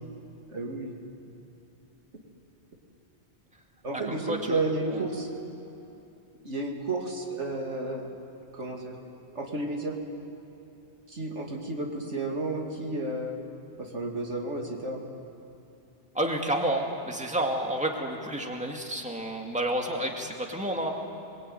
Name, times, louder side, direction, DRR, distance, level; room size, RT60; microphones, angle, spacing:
voice 1, 0.5-1.0 3.8-5.3 6.4-8.1 8.5-9.0 9.3-10.0 11.1-13.4 13.8-15.0, right 2 dB, 90° right, 1 dB, 3.0 m, -32 dB
voice 2, 4.0-4.6 4.9-5.0 16.1-20.9, right 1 dB, 5° right, 1 dB, 2.4 m, -30 dB
26.0 x 21.5 x 9.4 m, 3.0 s
omnidirectional pair, 1.2 m